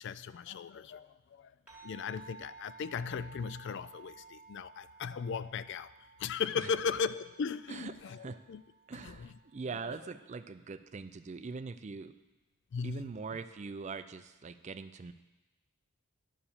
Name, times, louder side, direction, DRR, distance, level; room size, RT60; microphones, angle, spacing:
voice 1, 0.0-1.5 1.8-5.9 6.2-8.6 9.0-9.3 9.9-10.0 12.7-13.1, left 6 dB, 55° left, 15 dB, 0.3 m, -37 dB
sound 1, 1.7-10.4, right 4 dB, 5° right, 1.7 m, -56 dB
voice 2, 7.7-8.4 8.9-12.1 12.8-15.1, right 4 dB, 35° right, 12 dB, 0.4 m, -42 dB
11.0 x 4.9 x 7.2 m, 1.1 s
head